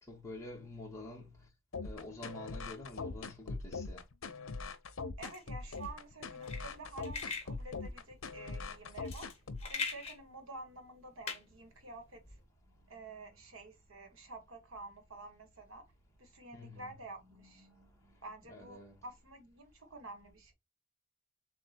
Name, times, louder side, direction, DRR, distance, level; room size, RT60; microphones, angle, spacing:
voice 1, 0.0-1.5 1.8-4.0 12.8-13.3 16.5-16.9 17.2-18.2 18.5-19.0, left 2 dB, 15° left, 1.3 m, -49 dB
sound 1, 1.7-9.7, left 3 dB, 75° left, 0.7 m, -41 dB
sound 2, 5.2-12.4, left 5 dB, 30° left, 1.8 m, -44 dB
voice 2, 5.2-9.3 9.7-12.2 12.9-15.9 16.2-17.7 18.2-20.5, right 2 dB, 80° right, 1.4 m, -50 dB
7.2 x 2.4 x 2.8 m
head